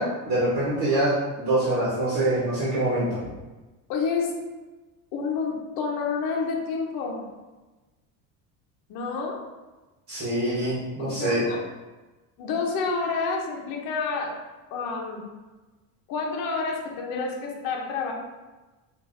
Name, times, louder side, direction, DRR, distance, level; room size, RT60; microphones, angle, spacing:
voice 1, 0.0-3.2 10.1-11.4, right 1 dB, 45° right, -8 dB, 1.3 m, -25 dB
voice 2, 3.9-4.4 5.1-7.2 8.9-9.4 11.0-11.6 12.4-14.4 14.7-15.2 16.1-18.1, left 4 dB, 60° left, 0 dB, 0.8 m, -29 dB
5.5 x 2.6 x 2.6 m, 1.2 s
supercardioid pair, 110°, 40 cm